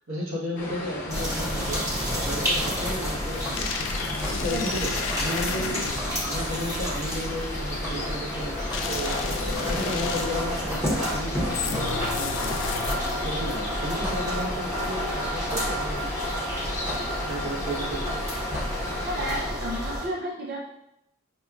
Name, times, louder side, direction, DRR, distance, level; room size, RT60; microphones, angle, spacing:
voice 1, 0.1-1.8 2.2-3.9 4.3-9.2 9.7-12.7 13.1-16.1 17.2-18.3, equal, 80° right, -4 dB, 1.0 m, -34 dB
sound 1, 0.6-19.4, left 2 dB, 40° left, 0.9 m, -36 dB
sound 2, 1.1-20.1, equal, 15° right, 0.8 m, -30 dB
sound 3, 3.2-6.3 8.7-10.5 11.5-13.3, left 6 dB, 65° left, 0.3 m, -33 dB
voice 2, 4.5-4.8 19.0-20.6, equal, 50° right, -2 dB, 0.4 m, -32 dB
5.1 x 2.2 x 2.3 m, 0.81 s
head